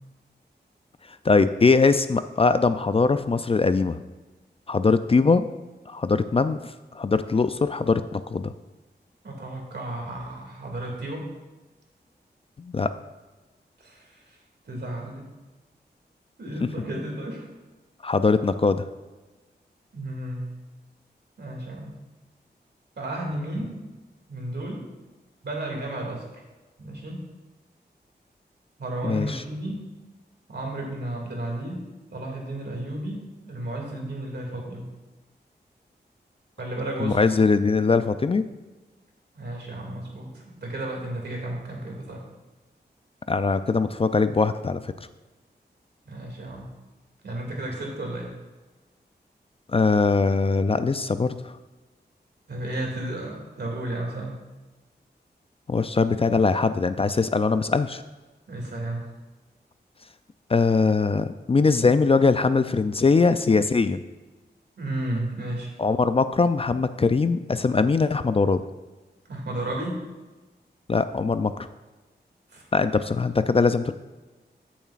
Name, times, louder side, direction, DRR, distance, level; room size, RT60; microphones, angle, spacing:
voice 1, 1.2-4.0 4.7-5.5 5.9-6.6 6.9-8.5 12.6-12.9 18.0-18.9 29.0-29.4 37.0-38.5 43.3-44.8 49.7-51.6 55.7-58.0 60.5-64.0 65.8-68.6 70.9-71.7 72.7-73.9, left 4 dB, 35° left, 11 dB, 0.4 m, -21 dB
voice 2, 9.2-11.3 13.8-14.4 14.6-15.3 16.4-17.5 19.9-20.5 21.4-22.0 23.0-23.8 24.3-24.9 25.4-26.3 26.8-27.2 28.8-29.9 30.5-34.8 36.6-37.2 39.3-42.2 46.1-46.7 47.2-48.3 52.5-54.4 58.5-59.1 64.8-65.7 69.3-70.1 72.5-72.7, right 1 dB, 70° right, -1 dB, 2.4 m, -33 dB
14.0 x 7.2 x 2.5 m, 1.2 s
wide cardioid pair, 70°, 18 cm